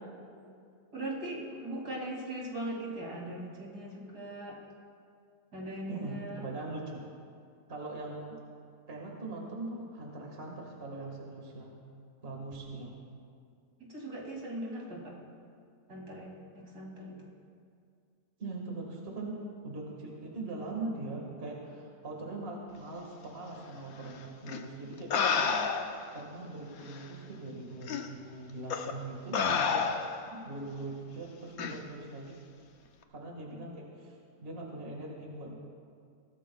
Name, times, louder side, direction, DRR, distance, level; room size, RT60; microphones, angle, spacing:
voice 1, 0.9-4.6 5.5-6.5 13.9-15.1 15.9-17.3 30.3-30.6 33.5-33.6, right 1 dB, 70° right, -3 dB, 3.2 m, -40 dB
voice 2, 5.9-7.0 7.7-8.4 8.9-11.7 12.2-12.9 18.4-19.4 19.6-25.5 26.1-29.9 30.4-32.3 33.1-34.1 34.4-35.6, right 2 dB, 35° right, -1 dB, 1.9 m, -41 dB
sound 1, 24.5-24.6 25.1-26.1 26.9-27.0 27.9-28.1 28.7-28.9 29.3-30.3 31.6-31.8, left 6 dB, 65° left, 1.2 m, -29 dB
22.0 x 16.5 x 2.3 m, 2.2 s
omnidirectional pair, 1.8 m